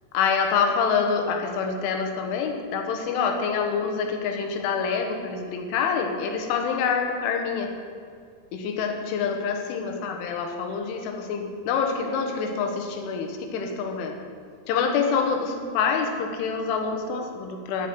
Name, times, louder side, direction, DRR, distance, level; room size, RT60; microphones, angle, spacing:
voice 1, 0.2-7.7 8.5-14.2 14.7-17.9, left 5 dB, 80° left, 4 dB, 3.5 m, -26 dB
14.0 x 5.9 x 9.2 m, 2.2 s
omnidirectional pair, 5.6 m